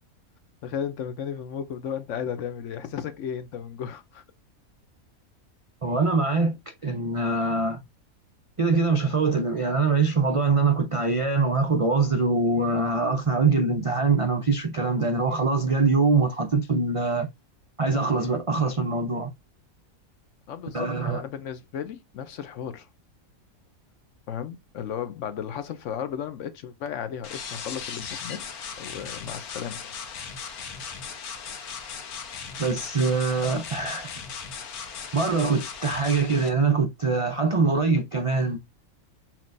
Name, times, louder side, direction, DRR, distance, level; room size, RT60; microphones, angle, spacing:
voice 1, 0.6-4.2 20.5-22.9 24.3-28.4 28.8-29.9, left 8 dB, 65° left, 0.9 m, -34 dB
voice 2, 5.8-7.8 8.6-17.3 17.8-19.3 20.7-21.2 32.6-34.1 35.1-38.6, right 4 dB, 60° right, 0.3 m, -23 dB
sound 1, 27.2-36.5, left 6 dB, 90° left, 1.4 m, -37 dB
5.8 x 2.9 x 2.6 m
omnidirectional pair, 1.5 m